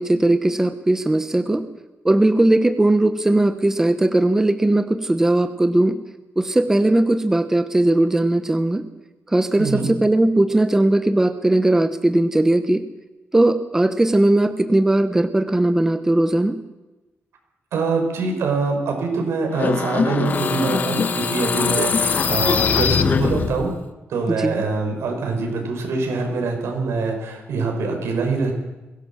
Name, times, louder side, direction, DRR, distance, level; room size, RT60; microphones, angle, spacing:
voice 1, 0.0-1.6 2.0-6.0 6.4-8.9 9.3-12.8 13.3-16.6 24.3-24.5, right 1 dB, 10° right, 10 dB, 0.9 m, -18 dB
voice 2, 9.6-9.9 17.7-23.7 24.1-28.5, right 4 dB, 85° right, 3 dB, 5.7 m, -24 dB
sound 1, 19.5-23.8, left 6 dB, 40° left, 1.2 m, -21 dB
22.0 x 17.0 x 7.3 m, 1.1 s
wide cardioid pair, 160°, 4 cm